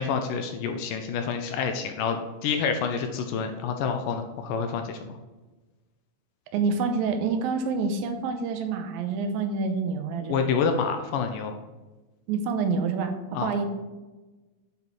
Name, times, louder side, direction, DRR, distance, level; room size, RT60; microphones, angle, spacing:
voice 1, 0.0-5.1 10.2-11.5 13.3-13.5, left 6 dB, 80° left, 6 dB, 2.1 m, -28 dB
voice 2, 6.5-10.4 12.3-13.7, right 4 dB, 90° right, 7 dB, 2.5 m, -27 dB
8.5 x 4.0 x 4.5 m, 1.2 s
omnidirectional pair, 4.1 m